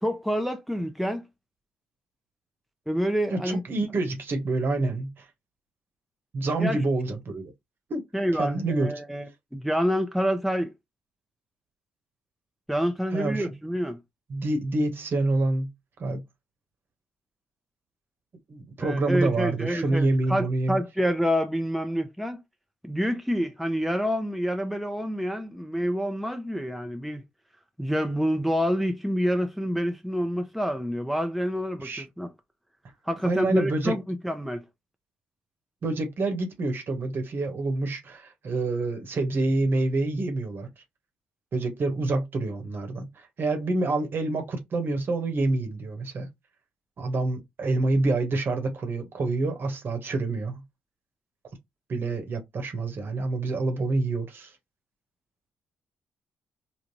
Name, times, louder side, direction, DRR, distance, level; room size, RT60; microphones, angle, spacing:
voice 1, 0.0-1.2 2.9-3.6 6.6-6.8 8.1-10.7 12.7-14.0 18.8-22.4 22.8-27.2 27.8-32.3 33.1-34.6, equal, ahead, 0.7 m, -27 dB
voice 2, 3.3-5.3 6.3-7.5 7.9-8.0 8.3-8.9 13.1-13.5 14.3-15.7 16.0-16.2 18.5-20.8 31.8-32.0 33.2-33.9 35.8-40.7 41.5-46.3 47.0-50.6 51.9-54.5, right 2 dB, 50° right, 1.1 m, -27 dB
3.7 x 2.4 x 3.0 m
hypercardioid pair, 45°, 5 cm